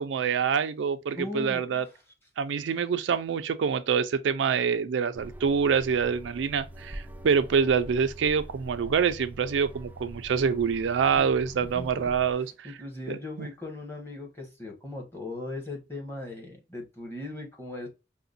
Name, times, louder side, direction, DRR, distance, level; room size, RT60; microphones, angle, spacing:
voice 1, 0.0-1.8 2.4-12.7 13.1-13.5, right 6 dB, 90° right, 0.4 m, -26 dB
voice 2, 1.1-1.6 11.1-11.3 11.6-12.1 12.6-17.9, left 2 dB, 15° left, 1.0 m, -38 dB
sound 1, 5.1-12.3, right 1 dB, 10° right, 0.3 m, -44 dB
4.7 x 2.1 x 2.5 m
head